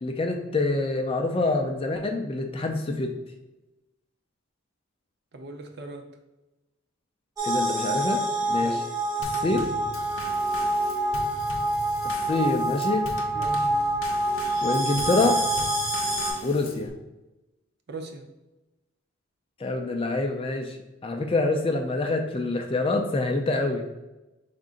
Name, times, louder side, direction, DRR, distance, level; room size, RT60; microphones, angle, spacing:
voice 1, 0.0-3.1 7.4-8.8 9.4-9.7 12.0-13.1 14.6-15.4 16.4-16.9 19.6-20.8 21.0-23.9, left 2 dB, 25° left, 4 dB, 0.3 m, -26 dB
voice 2, 5.3-6.1 8.6-8.8 13.3-13.7 17.9-18.3, right 2 dB, 50° right, 4 dB, 0.5 m, -39 dB
sound 1, 7.4-16.3, right 1 dB, 15° right, 1.1 m, -26 dB
Drum kit / Snare drum / Bass drum, 9.2-16.9, left 2 dB, 70° left, 0.6 m, -39 dB
5.0 x 3.7 x 2.4 m, 1.0 s
head